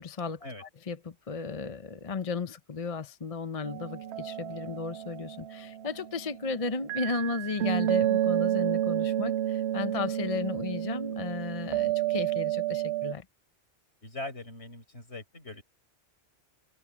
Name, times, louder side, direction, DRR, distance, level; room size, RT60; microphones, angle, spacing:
voice 1, 0.0-13.2, left 4 dB, 35° left, 0.8 m, -35 dB
sound 1, 3.6-6.4 6.9-13.1, right 12 dB, 70° right, 0.8 m, -30 dB
voice 2, 14.0-15.6, left 2 dB, 65° left, 5.7 m, -41 dB
open air
omnidirectional pair, 1.2 m